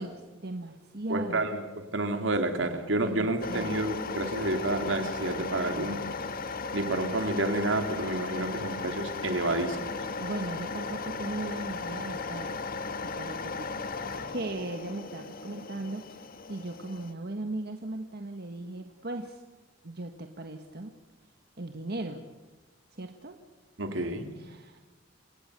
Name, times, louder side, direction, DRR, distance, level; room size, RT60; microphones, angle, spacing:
voice 1, 0.0-1.5 3.0-3.8 10.2-13.7 14.3-16.2 16.5-19.4 19.8-20.9 21.6-22.2 22.9-23.4 24.3-24.8, right 2 dB, 55° right, 1.6 m, -38 dB
voice 2, 1.1-6.0 6.7-9.9 23.8-24.3, right 2 dB, 75° right, 2.9 m, -29 dB
sound 1, 3.4-17.1, left 4 dB, 50° left, 1.6 m, -36 dB
29.5 x 18.0 x 6.9 m
head